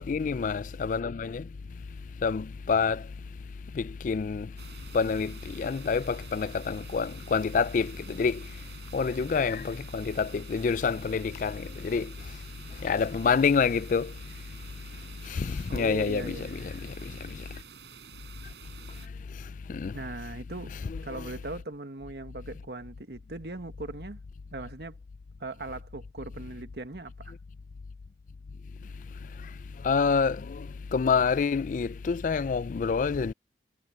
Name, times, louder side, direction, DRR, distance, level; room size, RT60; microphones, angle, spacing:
voice 1, 0.0-1.5 2.2-3.1 3.7-4.5 4.9-8.4 8.9-12.1 12.8-14.1 15.2-17.6 19.7-20.0 20.8-21.3 29.4-29.5 29.8-33.3, left 5 dB, 45° left, 0.3 m, -28 dB
sound 1, 4.6-19.1, right 6 dB, 80° right, 4.9 m, -49 dB
voice 2, 15.7-16.8 19.9-20.8 21.0-24.2 24.5-25.0 25.4-27.3, right 2 dB, 65° right, 1.5 m, -39 dB
head